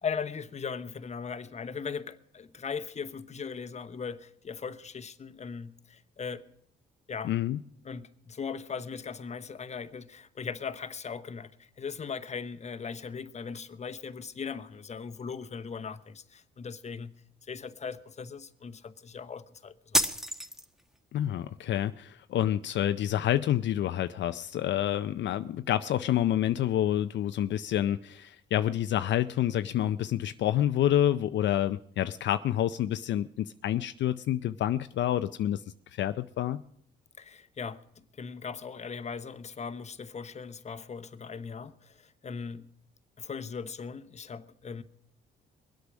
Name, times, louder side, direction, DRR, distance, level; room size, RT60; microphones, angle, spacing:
voice 1, 0.0-6.4 7.1-7.3 7.8-17.1 17.4-20.1 37.2-42.7 43.2-44.8, left 6 dB, 35° left, 0.9 m, -39 dB
voice 2, 7.2-7.6 21.1-35.6 35.9-36.6, left 11 dB, 65° left, 0.5 m, -28 dB
sound 1, 19.9-21.0, equal, ahead, 1.1 m, -28 dB
22.0 x 8.3 x 6.2 m
cardioid pair, 90°, 20 cm